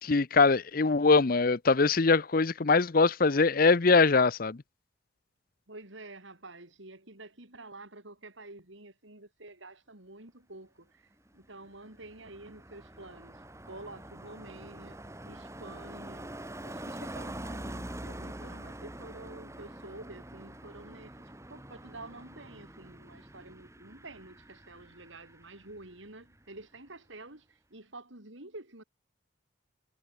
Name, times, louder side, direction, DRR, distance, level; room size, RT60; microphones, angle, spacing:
voice 1, 0.0-4.6, left 4 dB, 45° left, 0.6 m, -23 dB
voice 2, 5.7-21.2 21.5-28.8, right 2 dB, 70° right, 4.2 m, -49 dB
Car passing by, 11.3-26.1 26.3-26.6, right 1 dB, 15° right, 2.2 m, -45 dB
head